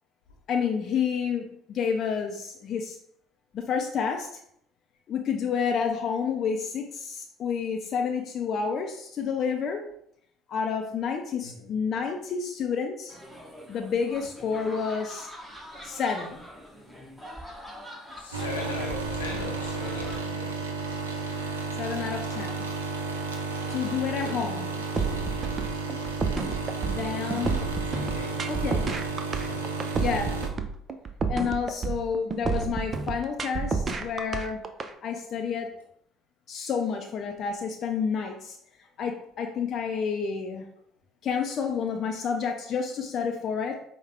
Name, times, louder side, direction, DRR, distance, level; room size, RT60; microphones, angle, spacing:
voice 1, 0.5-3.0 3.5-4.3 5.1-9.9 10.5-13.2 13.7-15.3 15.8-16.4 21.8-22.6 23.7-24.7 26.9-27.7 28.5-28.9 30.0-30.4 31.3-34.6 35.0-35.7 36.5-38.6 39.0-40.7 41.2-43.8, left 6 dB, 50° left, 3 dB, 0.4 m, -29 dB
voice 2, 11.4-11.9 18.2-20.6 24.0-24.7 27.8-28.6 29.4-29.7, left 3 dB, 85° left, 0 dB, 0.8 m, -40 dB
sound 1, 13.1-20.2, equal, 5° right, 1.2 m, -43 dB
sound 2, 18.3-30.5, right 3 dB, 90° right, 0.4 m, -32 dB
sound 3, 25.0-34.9, right 5 dB, 35° right, 0.5 m, -30 dB
4.7 x 2.1 x 3.4 m, 0.69 s
hypercardioid pair, 60°, 0 cm